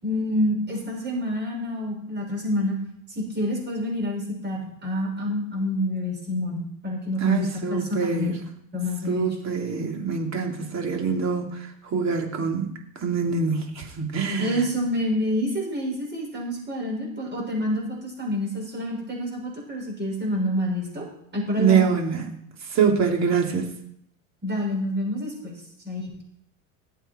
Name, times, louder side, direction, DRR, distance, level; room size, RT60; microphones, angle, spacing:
voice 1, 0.0-2.8 3.1-8.3 8.7-9.3 14.4-21.1 21.3-21.9 24.4-25.5 25.8-26.2, left 1 dB, 25° right, -1 dB, 6.6 m, -28 dB
voice 2, 7.2-8.4 9.1-12.7 13.0-14.6 21.6-22.3 22.7-23.7, right 6 dB, 40° right, 2 dB, 3.5 m, -24 dB
20.5 x 8.1 x 4.6 m, 0.70 s
supercardioid pair, 100°, 41 cm